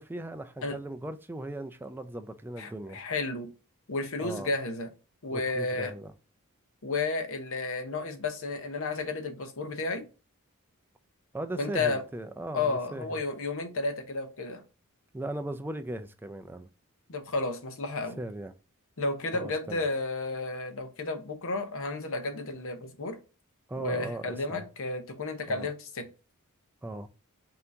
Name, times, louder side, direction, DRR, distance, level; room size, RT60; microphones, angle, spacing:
voice 1, 0.0-3.0 4.2-4.5 5.3-6.1 11.3-13.2 15.1-16.7 18.2-18.5 19.3-19.8 23.7-24.7 25.5-25.7 26.8-27.1, right 1 dB, 10° right, 0.3 m, -38 dB
voice 2, 2.6-3.5 3.9-4.9 5.2-5.9 6.8-10.1 11.6-12.0 12.5-14.6 17.1-18.2 19.0-23.2 23.8-26.1, left 3 dB, 65° left, 0.8 m, -32 dB
5.6 x 2.8 x 2.6 m
head